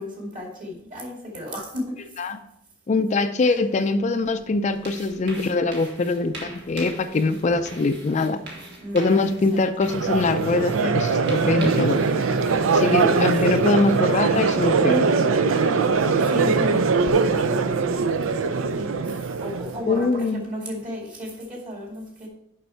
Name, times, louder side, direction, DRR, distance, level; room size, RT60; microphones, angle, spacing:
voice 1, 0.0-2.0 3.4-3.6 8.8-9.9 13.3-13.7 16.0-22.3, left 1 dB, 40° right, -1 dB, 2.5 m, -35 dB
voice 2, 2.9-8.4 8.9-12.0 12.7-15.1 19.9-20.4, left 3 dB, 35° left, 9 dB, 0.4 m, -23 dB
sound 1, 4.2-14.4, right 2 dB, 60° right, 1.9 m, -43 dB
Crowd, 9.9-20.0, right 4 dB, 90° right, 0.5 m, -22 dB
6.8 x 5.7 x 4.4 m, 0.77 s
head